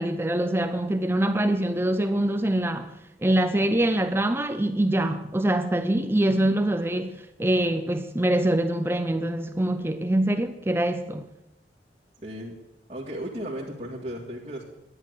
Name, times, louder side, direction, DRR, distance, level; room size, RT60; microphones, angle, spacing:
voice 1, 0.0-11.3, right 1 dB, 15° right, 0.5 m, -24 dB
voice 2, 12.2-12.6 12.9-14.7, equal, 35° right, 1.9 m, -35 dB
11.0 x 10.5 x 7.9 m
head